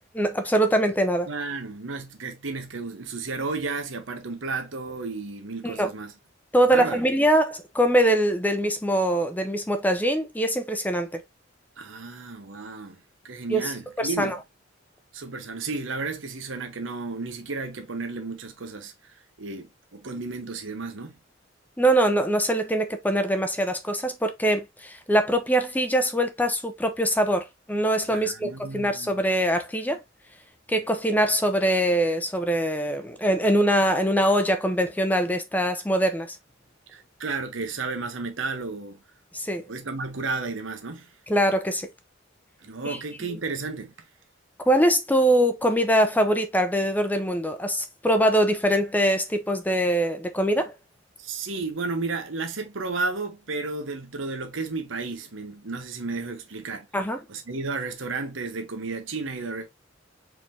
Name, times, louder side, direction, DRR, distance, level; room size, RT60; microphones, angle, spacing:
voice 1, 0.1-1.3 5.6-5.9 6.5-11.2 13.5-13.7 14.0-14.4 21.8-30.0 30.7-36.4 39.3-39.6 41.3-41.9 42.8-43.0 44.7-50.7 56.9-57.2, right 1 dB, 10° left, 0.6 m, -23 dB
voice 2, 1.3-6.1 6.7-7.0 11.8-13.0 13.2-14.3 15.1-21.1 28.1-29.2 36.9-39.0 39.7-41.1 42.6-43.9 51.2-56.9 57.3-59.7, right 3 dB, 75° right, 1.0 m, -33 dB
4.6 x 3.8 x 2.6 m
head